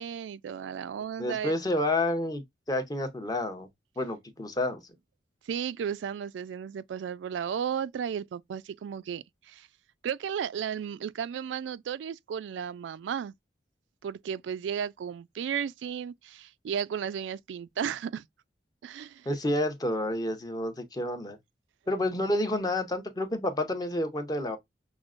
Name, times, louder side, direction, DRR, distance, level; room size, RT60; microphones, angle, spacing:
voice 1, 0.0-1.5 5.5-9.7 10.0-13.3 14.0-18.2 18.8-19.3, right 8 dB, 85° right, 0.3 m, -34 dB
voice 2, 1.2-2.4 2.7-3.7 4.0-4.8 19.3-21.4 21.9-24.6, left 1 dB, 20° left, 0.8 m, -29 dB
6.0 x 2.1 x 2.4 m
head